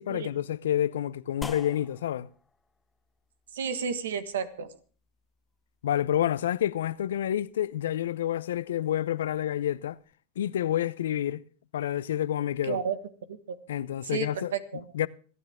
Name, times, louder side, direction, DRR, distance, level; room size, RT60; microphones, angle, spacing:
voice 1, 0.0-2.3 5.8-10.0 10.4-11.4 11.7-12.8 13.7-14.5 14.9-15.1, left 11 dB, 85° left, 0.6 m, -28 dB
sound 1, 1.4-10.1, left 3 dB, 10° left, 1.1 m, -50 dB
voice 2, 3.5-4.7 12.6-13.0 13.3-13.5 14.1-14.9, right 7 dB, 85° right, 1.6 m, -32 dB
27.0 x 9.2 x 3.6 m
hypercardioid pair, 110°, 0 cm